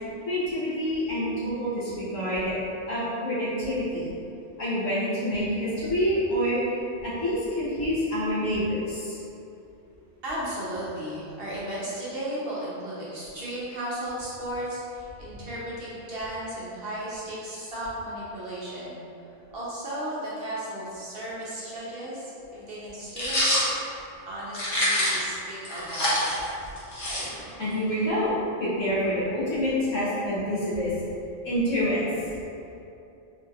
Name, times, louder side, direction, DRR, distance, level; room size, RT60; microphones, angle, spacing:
voice 1, 0.2-2.5 2.9-4.0 4.6-6.6 7.0-9.2 27.6-28.3 28.6-30.9 31.4-32.4, equal, 75° left, -10 dB, 1.4 m, -27 dB
voice 2, 10.2-19.0 19.5-23.6 24.3-26.4, right 1 dB, 55° right, -8 dB, 0.8 m, -35 dB
sound 1, 23.2-23.7 24.5-25.3 25.6-27.6, equal, 30° left, 0.7 m, -25 dB
3.7 x 2.8 x 2.4 m, 2.7 s
omnidirectional pair, 1.3 m